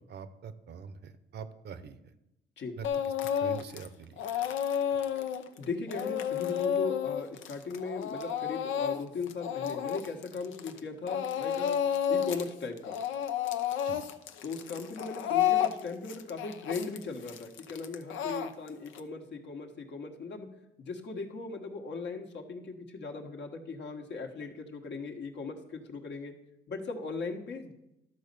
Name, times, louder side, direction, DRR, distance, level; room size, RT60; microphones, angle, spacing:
voice 1, 0.1-2.0 2.8-2.9 3.2-4.2 13.8-14.0, right 6 dB, 60° right, 12 dB, 0.8 m, -44 dB
Speech / Crying sobbing, 2.8-3.9 4.2-10.8 11.1-12.5 12.8-19.0, left 9 dB, 80° left, 0.8 m, -31 dB
voice 2, 5.6-11.8 12.1-13.0 14.4-20.5 20.8-26.3 26.7-27.7, left 4 dB, 60° left, 4 dB, 1.4 m, -38 dB
12.0 x 4.2 x 6.9 m, 0.89 s
cardioid pair, 90°, 20 cm